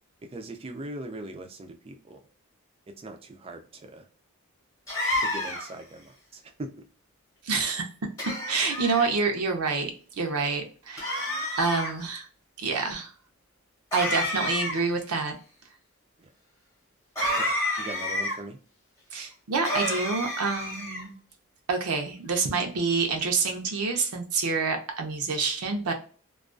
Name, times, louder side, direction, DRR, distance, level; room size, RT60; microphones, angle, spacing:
voice 1, 0.2-2.2 3.0-4.1 5.2-6.7 16.2-16.3 17.4-18.6, right 1 dB, 25° right, 5 dB, 0.3 m, -40 dB
sound 1, 4.9-5.8 8.2-9.1 11.0-11.9 13.9-15.0 17.2-18.4 19.6-21.1, left 1 dB, 15° left, 0.8 m, -29 dB
voice 2, 7.4-7.9 8.5-12.3 12.6-13.1 13.9-15.3 19.1-21.1 21.7-25.9, right 4 dB, 85° right, 4 dB, 0.6 m, -27 dB
2.3 x 2.2 x 2.4 m, 0.40 s
head